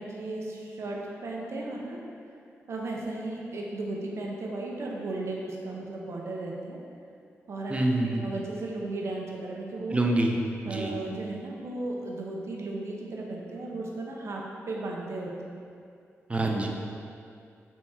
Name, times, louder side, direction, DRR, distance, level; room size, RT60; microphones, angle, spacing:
voice 1, 0.0-2.0 2.7-6.8 7.5-7.8 8.2-10.0 10.7-15.5, right 2 dB, 60° right, -2 dB, 0.7 m, -35 dB
voice 2, 7.7-8.3 9.9-10.4 10.6-10.9 16.3-16.7, right 2 dB, 25° right, 1 dB, 0.5 m, -26 dB
3.5 x 2.8 x 4.2 m, 2.5 s
cardioid pair, 65°, 5 cm